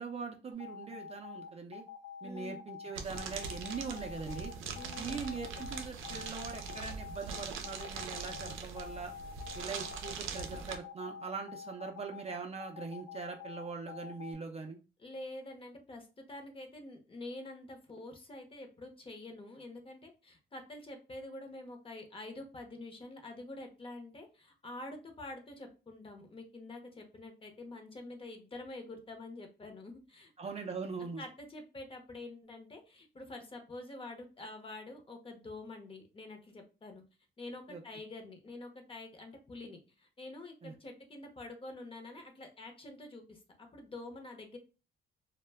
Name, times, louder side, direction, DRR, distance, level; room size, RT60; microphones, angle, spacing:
voice 1, 0.0-1.8 2.2-4.5 5.0-9.1 9.6-14.8 30.4-31.2 37.7-37.8 40.6-40.7, right 5 dB, 30° right, 3 dB, 0.4 m, -41 dB
sound 1, 0.5-14.3, left 7 dB, 75° left, 0.4 m, -47 dB
voice 2, 2.2-2.6 4.7-5.2 15.0-30.6 31.2-37.0 37.4-44.6, left 2 dB, 25° left, 4 dB, 0.7 m, -47 dB
sound 2, 2.9-10.8, right 5 dB, 85° right, 0.5 m, -42 dB
2.1 x 2.0 x 3.3 m, 0.31 s
cardioid pair, 90°, 20 cm